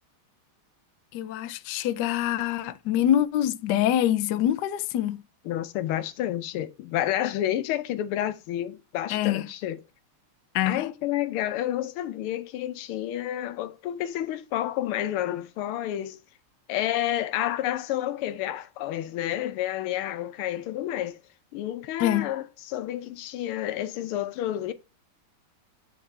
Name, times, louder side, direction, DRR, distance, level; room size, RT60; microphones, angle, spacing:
voice 1, 1.1-5.2 9.1-9.4 10.5-10.8 22.0-22.3, left 11 dB, 70° left, 1.0 m, -25 dB
voice 2, 5.4-9.8 10.7-16.2 16.7-21.2 21.5-24.7, left 12 dB, 90° left, 1.6 m, -30 dB
8.0 x 4.6 x 3.3 m
omnidirectional pair, 2.3 m